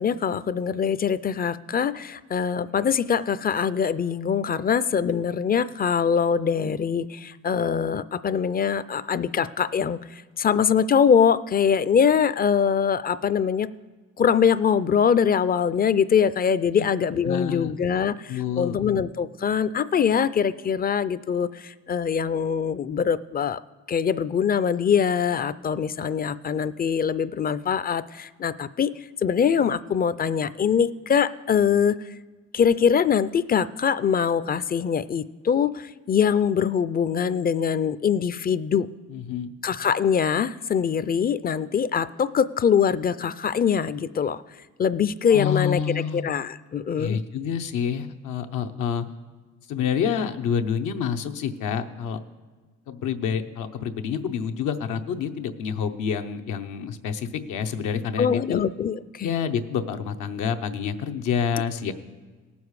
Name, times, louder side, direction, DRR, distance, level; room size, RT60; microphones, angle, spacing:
voice 1, 0.0-13.7 14.2-23.6 23.9-28.9 29.2-32.0 32.5-38.9 39.6-44.4 44.8-47.2 58.2-59.4, left 7 dB, 30° left, 16 dB, 0.4 m, -23 dB
voice 2, 17.3-17.7 18.3-18.8 39.1-39.5 45.3-46.2 47.0-49.1 49.7-52.2 52.9-58.6 59.2-61.9, left 7 dB, 85° left, 7 dB, 0.8 m, -28 dB
18.0 x 7.0 x 4.8 m, 1.3 s
cardioid pair, 90°, 30 cm